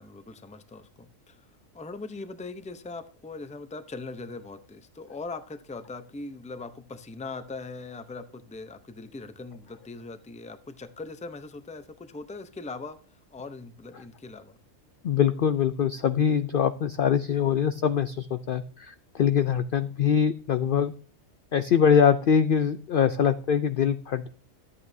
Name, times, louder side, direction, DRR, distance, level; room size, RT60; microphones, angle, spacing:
voice 1, 0.0-1.4 1.7-13.0 13.3-14.6, left 3 dB, 10° left, 10 dB, 0.5 m, -40 dB
voice 2, 15.0-20.9 21.5-24.3, left 7 dB, 60° left, 11 dB, 0.6 m, -23 dB
12.5 x 8.5 x 2.7 m, 0.41 s
omnidirectional pair, 1.4 m